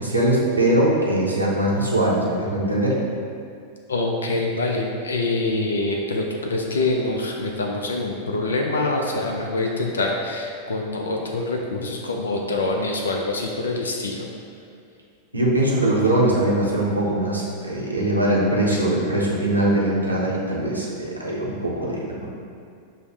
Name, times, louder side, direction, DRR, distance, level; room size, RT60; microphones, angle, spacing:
voice 1, 0.0-3.0 15.3-22.3, right 1 dB, 85° right, -4 dB, 0.7 m, -21 dB
voice 2, 3.9-14.3 18.7-18.8, left 2 dB, 70° left, 1 dB, 0.3 m, -25 dB
5.4 x 2.0 x 3.3 m, 2.3 s
figure-of-eight pair, 90°, 0 cm